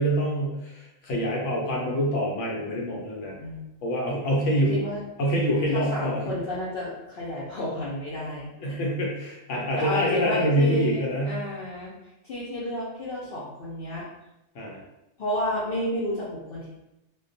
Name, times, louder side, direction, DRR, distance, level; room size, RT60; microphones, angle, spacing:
voice 1, 0.0-3.4 3.8-4.8 5.2-6.3 8.6-11.4 14.5-14.8, equal, 85° left, -3 dB, 0.9 m, -26 dB
voice 2, 4.7-5.0 5.7-8.8 9.8-11.9 12.2-14.0 15.2-16.7, left 1 dB, 60° left, -8 dB, 0.7 m, -31 dB
2.2 x 2.2 x 2.5 m, 0.89 s
omnidirectional pair, 1.2 m